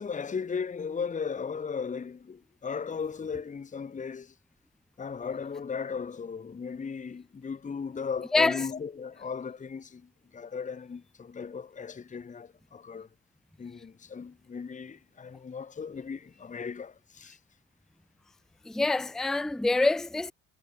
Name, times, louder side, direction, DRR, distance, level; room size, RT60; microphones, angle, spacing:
voice 1, 0.0-4.3 5.0-13.1 13.6-17.4, left 6 dB, 20° left, 1.1 m, -36 dB
voice 2, 8.3-8.7 18.6-20.3, left 2 dB, ahead, 0.6 m, -25 dB
hypercardioid pair, 70°, 34 cm